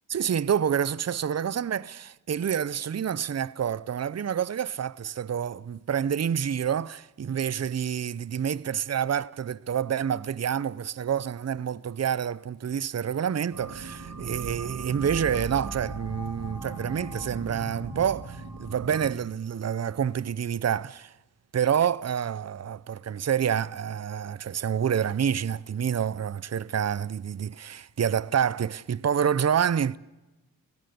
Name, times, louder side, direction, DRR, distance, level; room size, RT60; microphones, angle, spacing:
voice 1, 0.1-21.1 21.5-30.0, right 8 dB, 45° right, 0.6 m, -28 dB
sound 1, 13.5-19.1, right 3 dB, 70° right, 3.1 m, -38 dB
29.0 x 17.5 x 6.8 m
cardioid pair, 45°, 37 cm